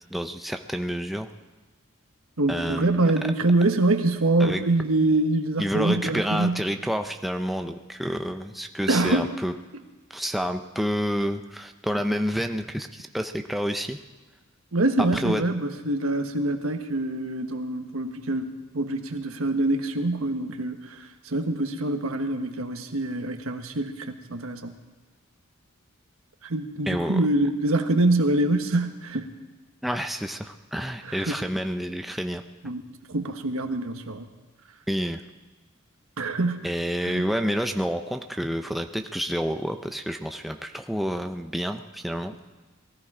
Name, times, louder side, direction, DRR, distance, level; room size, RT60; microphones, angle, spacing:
voice 1, 0.1-1.3 2.5-3.1 4.4-4.6 5.6-9.5 10.1-14.0 15.1-15.4 26.9-27.2 29.8-32.4 34.9-35.2 36.6-42.3, equal, ahead, 5 dB, 0.5 m, -29 dB
voice 2, 2.4-6.7 8.9-9.3 14.7-24.7 26.4-29.3 31.0-31.4 32.6-32.8 33.1-34.3 36.2-36.7 37.0-37.3, right 2 dB, 85° right, 6 dB, 1.3 m, -25 dB
19.5 x 14.5 x 4.9 m, 1.2 s
head